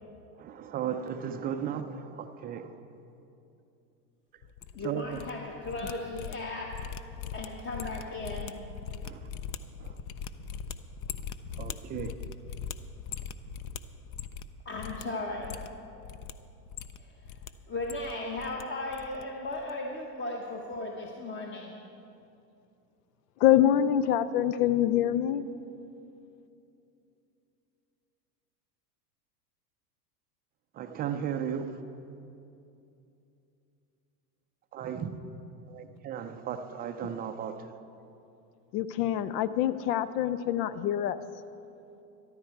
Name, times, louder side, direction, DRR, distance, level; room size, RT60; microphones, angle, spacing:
voice 1, 0.4-2.7 4.8-5.2 9.0-9.3 9.8-10.0 11.6-12.1 30.7-31.8 34.7-35.2 35.7-37.8, right 8 dB, 20° right, 8 dB, 0.3 m, -35 dB
sound 1, 4.4-5.3 5.6-14.5 14.8-15.0 15.4-16.3 16.7-17.5 17.8-18.6 18.9-19.2 19.5-19.7, left 7 dB, 45° left, 0.6 m, -40 dB
voice 2, 4.7-8.6 14.6-15.6 16.9-21.8, left 2 dB, 25° left, 0 dB, 1.1 m, -37 dB
voice 3, 23.4-25.4 38.7-41.2, left 11 dB, 75° left, 15 dB, 0.8 m, -25 dB
13.5 x 12.0 x 4.6 m, 2.8 s
supercardioid pair, 115°, 48 cm